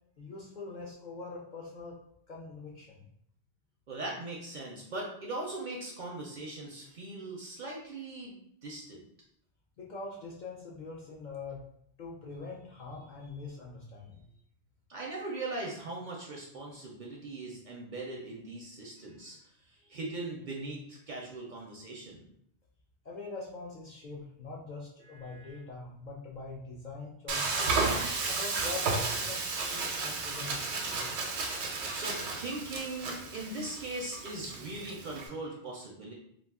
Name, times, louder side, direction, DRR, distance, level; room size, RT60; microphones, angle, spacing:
voice 1, 0.2-2.0 2.3-3.0 9.8-11.6 12.0-14.2 23.0-27.7 28.3-30.6 30.9-31.1, left 3 dB, 60° left, -3 dB, 0.5 m, -43 dB
voice 2, 3.9-8.4 8.6-9.1 14.9-22.3 25.0-25.6 31.9-36.1, right 2 dB, 55° right, -1 dB, 0.5 m, -40 dB
Frying (food), 27.3-35.3, right 4 dB, 85° right, 0.9 m, -33 dB
2.4 x 2.3 x 3.5 m, 0.70 s
omnidirectional pair, 1.1 m